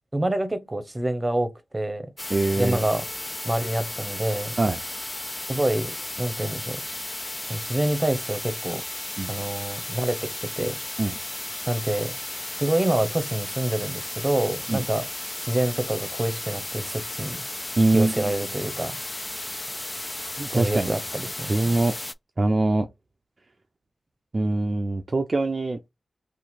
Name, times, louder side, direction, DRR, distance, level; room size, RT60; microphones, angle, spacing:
voice 1, 0.1-2.1 2.6-3.1 3.4-4.6 5.5-6.8 7.4-8.8 9.3-10.8 11.7-12.2 12.6-15.1 15.4-17.4 17.9-19.0 20.5-21.8, right 1 dB, 25° right, 0.8 m, -27 dB
sound 1, 2.2-22.1, left 1 dB, 25° left, 0.3 m, -34 dB
voice 2, 2.3-2.8 4.6-4.8 9.2-9.3 11.0-11.2 14.7-14.8 17.8-18.3 20.4-20.9 21.4-21.9 22.4-22.9 24.3-25.8, right 2 dB, 50° right, 0.4 m, -23 dB
2.8 x 2.5 x 4.2 m
cardioid pair, 40°, 0 cm